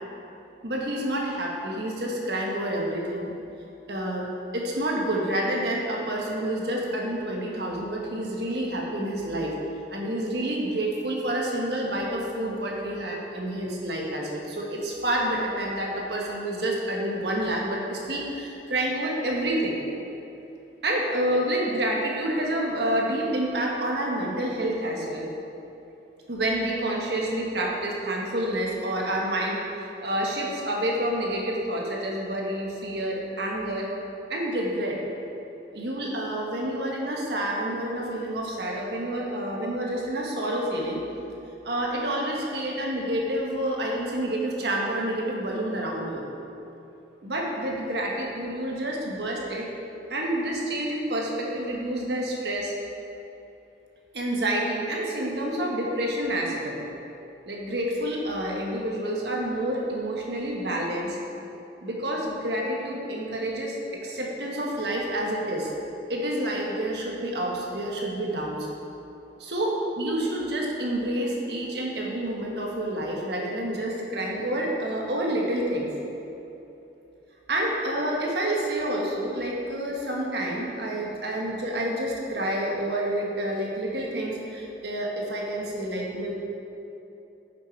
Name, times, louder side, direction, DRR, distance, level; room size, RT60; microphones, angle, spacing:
voice 1, 0.6-3.3 3.9-9.5 9.9-19.8 20.8-25.3 26.3-33.9 34.3-35.0 35.7-41.0 41.6-46.2 47.2-49.7 50.1-52.7 54.1-56.8 57.5-61.2 61.8-65.7 66.1-68.7 69.4-75.9 77.5-86.3, right 1 dB, 65° right, -2 dB, 1.5 m, -28 dB
9.0 x 6.9 x 4.6 m, 3.0 s
head